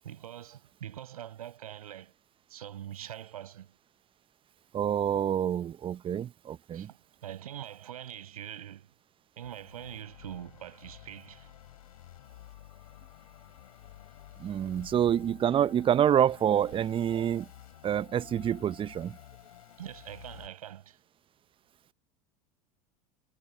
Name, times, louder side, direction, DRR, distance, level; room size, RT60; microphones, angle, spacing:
voice 1, 0.0-2.1 2.5-3.7 6.7-8.9 9.4-11.5 19.8-21.0, right 11 dB, 75° right, 5.6 m, -43 dB
voice 2, 4.7-6.9 14.4-17.4 17.8-19.1, right 10 dB, 30° right, 0.7 m, -27 dB
sound 1, 9.4-20.5, left 13 dB, 75° left, 6.9 m, -52 dB
hypercardioid pair, 85°, 19 cm